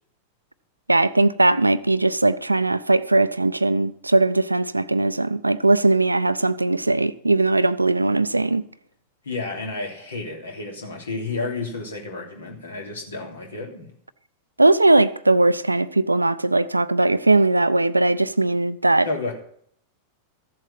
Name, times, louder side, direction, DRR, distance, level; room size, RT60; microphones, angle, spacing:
voice 1, 0.9-8.6 14.6-19.1, right 2 dB, 85° right, 0.5 m, -19 dB
voice 2, 9.2-13.9 19.0-19.3, left 3 dB, 70° left, 3.2 m, -31 dB
14.5 x 7.7 x 5.8 m
figure-of-eight pair, 90°, 0 cm